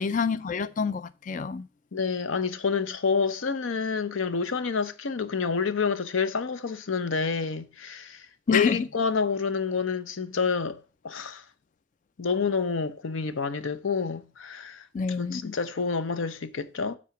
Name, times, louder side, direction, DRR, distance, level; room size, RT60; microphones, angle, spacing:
voice 1, 0.0-1.7 8.5-8.9 14.9-15.5, left 5 dB, 40° left, 0.4 m, -27 dB
voice 2, 1.9-10.8 11.0-11.4 12.2-17.0, left 5 dB, 75° left, 0.7 m, -28 dB
8.5 x 4.2 x 5.9 m
head